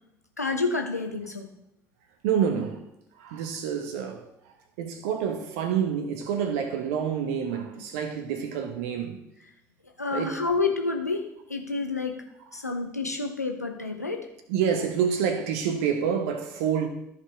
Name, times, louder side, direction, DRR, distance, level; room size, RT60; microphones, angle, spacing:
voice 1, 0.4-1.5 10.0-12.2 12.5-14.3, left 3 dB, 85° left, 0.8 m, -29 dB
voice 2, 2.2-2.8 3.2-4.3 4.8-9.2 10.1-10.4 14.5-16.9, right 7 dB, 65° right, 1.2 m, -28 dB
14.0 x 4.9 x 3.7 m
figure-of-eight pair, 55°, 8 cm